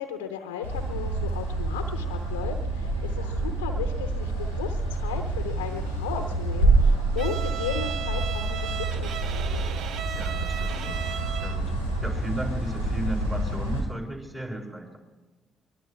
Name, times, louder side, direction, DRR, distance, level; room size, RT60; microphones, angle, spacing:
voice 1, 0.0-9.5, left 7 dB, 80° left, 6 dB, 0.8 m, -35 dB
sound 1, 0.6-13.8, right 2 dB, 90° right, 3.0 m, -27 dB
Bowed string instrument, 7.2-11.7, right 9 dB, 60° right, 0.6 m, -36 dB
voice 2, 10.1-11.7 12.0-15.0, right 1 dB, 25° right, 0 dB, 6.4 m, -35 dB
23.0 x 22.5 x 2.4 m, 1.2 s
figure-of-eight pair, 45°, 0 cm